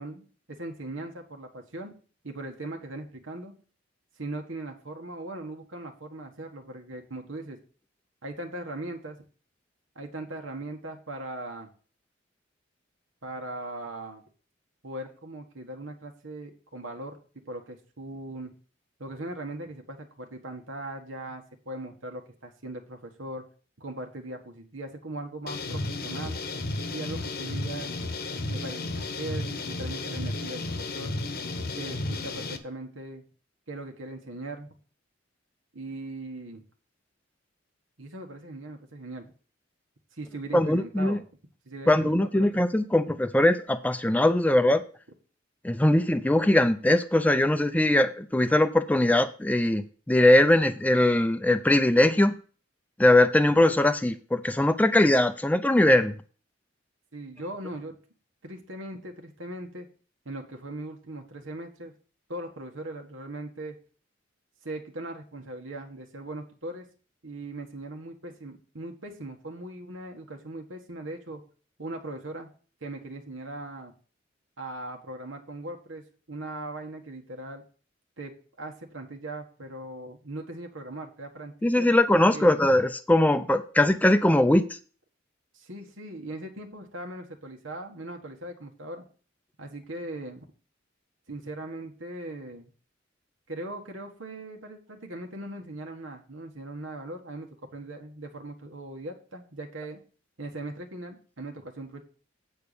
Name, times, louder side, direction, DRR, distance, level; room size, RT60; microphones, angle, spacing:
voice 1, 0.0-1.9 2.2-3.5 4.2-7.6 8.2-9.2 9.9-11.7 13.2-14.2 14.8-17.2 17.4-18.5 19.0-23.4 23.8-26.4 26.9-27.9 28.4-31.1 31.7-33.2 33.7-34.7 35.7-36.6 38.0-39.3 40.1-41.2 41.6-42.6 57.1-58.0 58.4-59.9 60.2-61.9 62.3-63.8 64.6-66.9 67.2-71.4 71.8-72.5 72.8-73.9 74.6-77.6 78.2-81.9 82.3-82.5 85.5-89.0 89.6-90.4 91.3-92.7 93.5-100.0 100.4-102.0, right 2 dB, 90° right, 3 dB, 1.6 m, -39 dB
sound 1, 25.5-32.6, left 2 dB, 55° left, 1.0 m, -33 dB
voice 2, 40.5-41.2 41.9-44.8 45.6-52.3 53.0-56.2 81.6-84.6, left 1 dB, 10° left, 9 dB, 0.4 m, -21 dB
8.7 x 4.7 x 6.8 m, 0.39 s
head